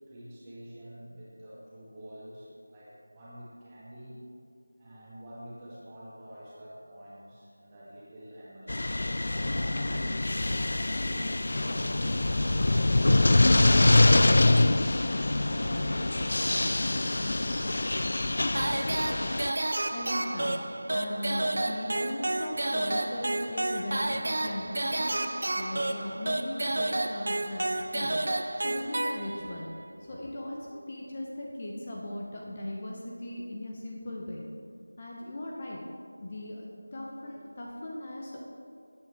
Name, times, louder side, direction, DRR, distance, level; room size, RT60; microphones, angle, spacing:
voice 1, 0.1-4.2 4.8-10.2 10.8-14.6 15.0-18.0, equal, 15° right, -8 dB, 2.1 m, -47 dB
sound 1, 8.7-19.5, left 2 dB, 50° left, 0.3 m, -24 dB
sound 2, 11.7-17.8, equal, 5° left, 0.9 m, -48 dB
sound 3, 18.5-29.7, right 1 dB, 50° right, 0.6 m, -31 dB
voice 2, 19.9-20.6 20.9-25.2 25.6-28.1 28.6-29.7 30.0-34.5 35.0-35.8 36.2-38.5, left 1 dB, 30° left, -3 dB, 1.0 m, -38 dB
13.5 x 8.6 x 3.6 m, 2.4 s
figure-of-eight pair, 170°, 0 cm